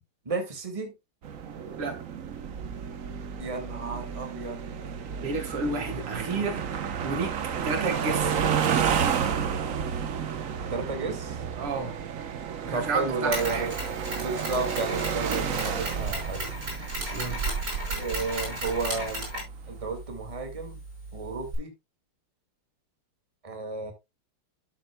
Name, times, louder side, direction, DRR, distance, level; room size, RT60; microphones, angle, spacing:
voice 1, 0.3-0.9 3.4-4.6 10.7-11.4 12.7-13.7 14.2-16.5 17.9-19.2 19.7-20.8 21.1-21.7 23.4-23.9, right 3 dB, 15° right, 1.9 m, -32 dB
sound 1, 1.2-19.4, right 7 dB, 55° right, 0.9 m, -31 dB
voice 2, 5.2-7.4 7.6-8.4 11.6-12.0 12.6-13.7 17.1-17.4, right 3 dB, 80° right, 2.7 m, -31 dB
Mechanisms, 13.3-21.6, right 1 dB, 40° right, 6.0 m, -35 dB
12.0 x 7.9 x 2.2 m
omnidirectional pair, 2.4 m